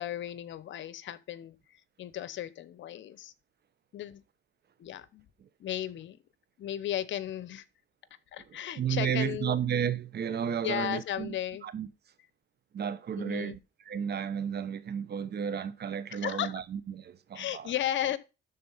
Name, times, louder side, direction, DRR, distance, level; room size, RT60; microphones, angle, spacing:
voice 1, 0.0-3.3 3.9-4.2 4.8-5.3 5.6-6.2 6.6-7.6 8.3-9.6 10.6-11.7 13.2-13.6 16.1-16.5 17.3-18.2, left 11 dB, 70° left, 0.9 m, -35 dB
voice 2, 8.8-11.3 11.6-11.9 12.7-13.6 13.9-17.7, right 8 dB, 55° right, 1.1 m, -32 dB
12.5 x 4.2 x 5.6 m
cardioid pair, 90°, 20 cm